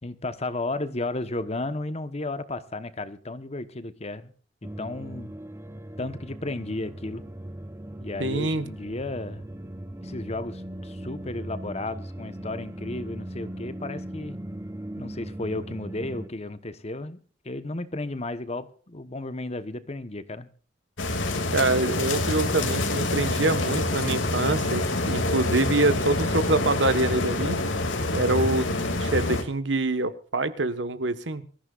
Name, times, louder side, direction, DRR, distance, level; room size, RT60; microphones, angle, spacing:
voice 1, 0.0-4.3 4.6-5.3 6.0-7.2 8.0-9.5 10.0-14.4 15.0-17.2 17.4-20.5, left 2 dB, 35° left, 1.1 m, -33 dB
sound 1, 4.6-16.3, right 1 dB, 15° right, 0.8 m, -39 dB
voice 2, 8.2-8.7 21.5-27.6 28.1-31.5, right 2 dB, 70° right, 1.4 m, -25 dB
sound 2, 21.0-29.4, left 2 dB, 85° left, 2.6 m, -26 dB
25.0 x 14.5 x 2.5 m
head